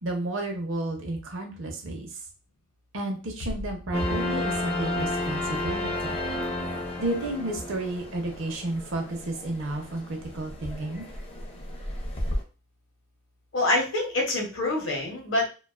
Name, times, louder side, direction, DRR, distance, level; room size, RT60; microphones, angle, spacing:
voice 1, 0.0-2.2 2.9-6.2 7.0-11.1, right 1 dB, 60° right, 2 dB, 0.6 m, -32 dB
sound 1, 3.4-5.0, left 1 dB, 90° left, 0.4 m, -39 dB
sound 2, 3.9-12.4, left 1 dB, 25° left, 0.4 m, -32 dB
voice 2, 13.5-15.5, left 2 dB, 55° left, 0 dB, 0.7 m, -26 dB
2.3 x 2.2 x 2.3 m, 0.33 s
head